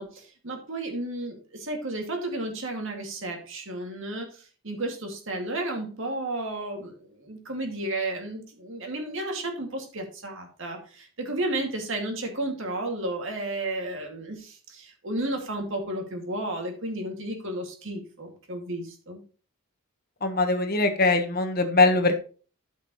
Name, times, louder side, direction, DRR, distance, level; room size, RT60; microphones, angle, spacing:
voice 1, 0.0-4.3 4.6-19.2, right 1 dB, 60° right, 3 dB, 2.3 m, -33 dB
voice 2, 20.2-22.2, left 3 dB, 45° left, 6 dB, 1.2 m, -22 dB
13.0 x 5.8 x 3.1 m, 0.38 s
head